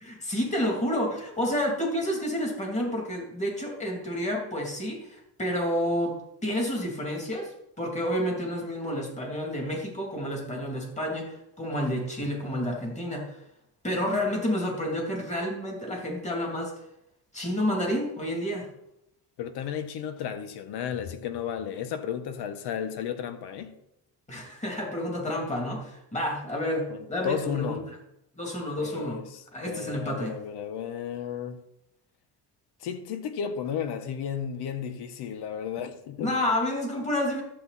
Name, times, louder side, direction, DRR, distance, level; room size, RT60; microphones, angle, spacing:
voice 1, 0.0-13.4 13.8-16.7 17.3-18.7 24.3-28.0 28.4-29.2 29.5-30.3 36.2-37.4, equal, 15° left, 2.9 m, -30 dB
voice 2, 19.4-23.7 26.9-27.8 28.8-31.6 32.8-36.3, left 8 dB, 70° left, 1.3 m, -33 dB
13.0 x 8.0 x 4.2 m
cardioid pair, 135°, 41 cm